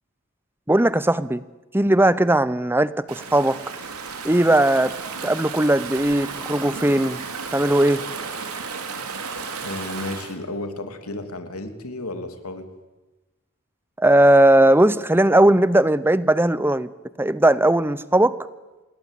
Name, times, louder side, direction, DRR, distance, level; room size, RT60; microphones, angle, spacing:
voice 1, 0.7-1.4 1.7-3.6 4.2-4.9 5.2-7.2 7.5-8.0 14.0-16.9 17.2-18.3, right 1 dB, 10° right, 16 dB, 0.8 m, -18 dB
Stream / Ocean, 3.1-10.3, right 5 dB, 85° right, 3.5 m, -33 dB
voice 2, 9.6-12.7, left 2 dB, 80° left, 7 dB, 3.1 m, -33 dB
27.0 x 21.0 x 8.5 m, 1.1 s
head